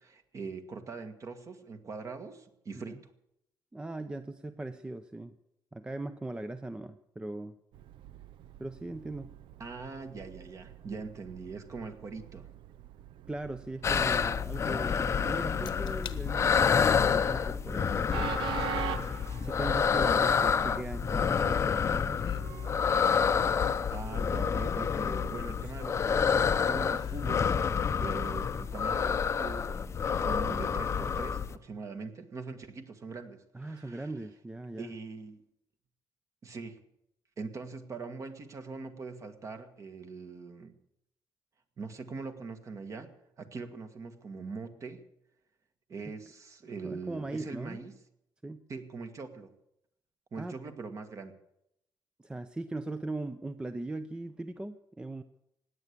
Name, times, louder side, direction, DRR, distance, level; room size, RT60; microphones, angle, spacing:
voice 1, 0.0-3.1 9.6-12.5 23.9-34.1 34.8-35.4 36.4-36.8 37.4-40.8 41.8-43.1 43.4-45.0 45.9-47.9 48.7-49.5 50.3-51.3, right 4 dB, 40° right, 8 dB, 1.7 m, -42 dB
voice 2, 3.7-5.3 5.7-7.5 8.6-9.3 13.3-18.4 19.4-21.8 33.5-34.9 46.0-46.1 46.8-47.8 48.4-48.6 50.3-50.6 52.2-55.2, right 2 dB, 10° right, 11 dB, 0.6 m, -39 dB
Train, 7.7-26.3, right 12 dB, 85° right, 0.6 m, -45 dB
sound 1, 13.8-31.6, left 6 dB, 35° left, 0.6 m, -28 dB
sound 2, 15.7-16.2 16.7-17.1 18.6-18.7 21.3-21.9 22.1-22.5 23.3-24.3 24.9-26.4 26.8-27.3 27.7-27.8, left 10 dB, 65° left, 1.0 m, -47 dB
16.5 x 9.7 x 8.4 m, 0.81 s
cardioid pair, 130°, 8 cm